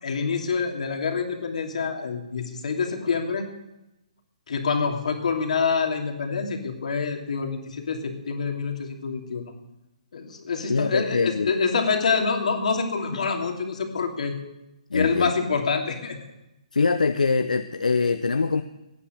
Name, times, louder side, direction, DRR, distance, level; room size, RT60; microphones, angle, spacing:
voice 1, 0.0-3.5 4.5-9.4 10.1-14.4 14.9-16.2, left 5 dB, 70° left, 4 dB, 2.8 m, -26 dB
voice 2, 10.7-11.5 14.9-15.3 16.7-18.6, left 4 dB, 85° left, 9 dB, 0.8 m, -23 dB
17.5 x 9.9 x 6.5 m, 0.94 s
hypercardioid pair, 140°, 4 cm